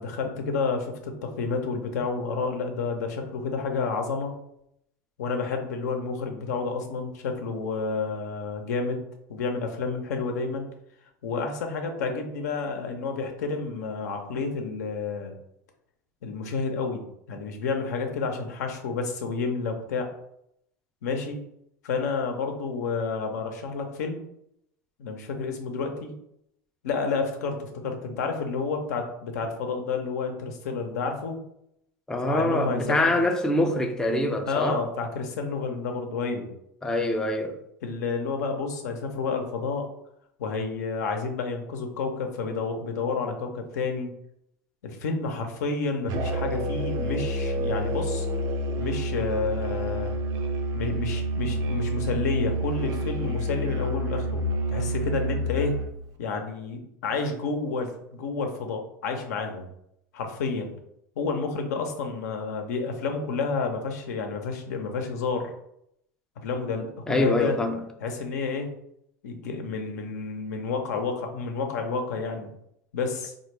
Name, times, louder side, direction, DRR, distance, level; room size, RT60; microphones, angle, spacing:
voice 1, 0.0-4.4 5.2-10.7 11.2-15.3 16.2-20.1 21.0-21.5 21.8-24.2 25.0-26.1 26.8-31.4 32.2-33.2 34.5-36.5 37.8-39.9 40.4-44.1 44.8-48.3 48.8-50.2 50.7-55.8 56.2-59.7 60.1-60.7 61.2-65.5 66.4-67.6 68.0-68.8 69.2-72.5 72.9-73.3, left 4 dB, 80° left, 0.6 m, -30 dB
voice 2, 32.1-34.8 36.8-37.6 67.1-67.8, left 1 dB, 5° left, 0.4 m, -24 dB
Musical instrument, 46.1-56.0, right 1 dB, 50° right, 0.5 m, -28 dB
3.4 x 2.2 x 3.2 m
hypercardioid pair, 100°, 9 cm